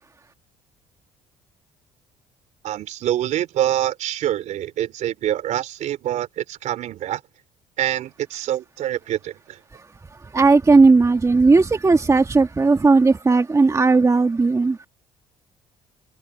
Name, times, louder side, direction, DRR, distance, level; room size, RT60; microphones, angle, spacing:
voice 1, 2.6-7.2 7.8-9.6, right 12 dB, 65° right, 3.6 m, -25 dB
voice 2, 10.3-14.8, right 3 dB, 25° right, 1.6 m, -16 dB
supercardioid pair, 70°, 13 cm